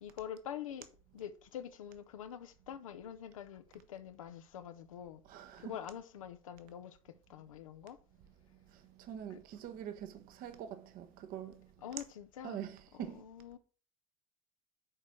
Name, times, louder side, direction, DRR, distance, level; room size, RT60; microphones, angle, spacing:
voice 1, 0.0-0.9 1.1-5.2 5.6-8.0 9.3-9.4 11.8-12.6 13.0-13.6, left 9 dB, 85° left, 0.7 m, -46 dB
voice 2, 5.2-5.8 8.7-11.7 12.4-13.2, right 9 dB, 55° right, 1.0 m, -45 dB
6.6 x 4.3 x 6.0 m
hypercardioid pair, 70°, 17 cm